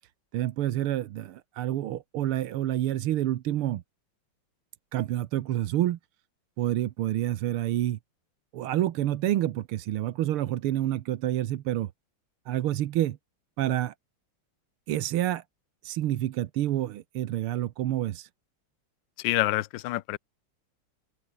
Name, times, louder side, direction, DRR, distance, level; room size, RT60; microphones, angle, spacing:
voice 1, 0.3-3.8 4.9-6.0 6.6-8.0 8.5-11.9 12.5-13.2 13.6-13.9 14.9-15.4 15.8-18.3, right 13 dB, 80° right, 1.8 m, -28 dB
voice 2, 19.2-20.2, left 17 dB, 70° left, 1.3 m, -27 dB
open air
omnidirectional pair, 2.4 m